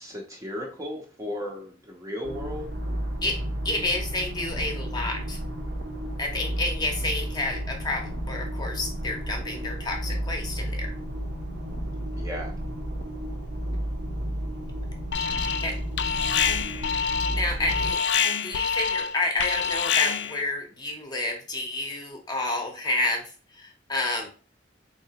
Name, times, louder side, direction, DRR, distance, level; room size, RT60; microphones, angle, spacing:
voice 1, 0.0-2.7 12.1-12.5, left 1 dB, 15° right, 0 dB, 0.6 m, -35 dB
sound 1, 2.2-17.9, right 1 dB, 70° right, 0.8 m, -32 dB
voice 2, 3.6-5.4 6.2-10.9 15.6-15.7 17.4-18.0 18.4-23.2 23.5-24.3, left 2 dB, 20° left, 2 dB, 0.7 m, -29 dB
Alarm, 15.1-15.7 16.0-20.4, left 7 dB, 65° left, 0.3 m, -26 dB
3.9 x 2.8 x 2.8 m, 0.37 s
head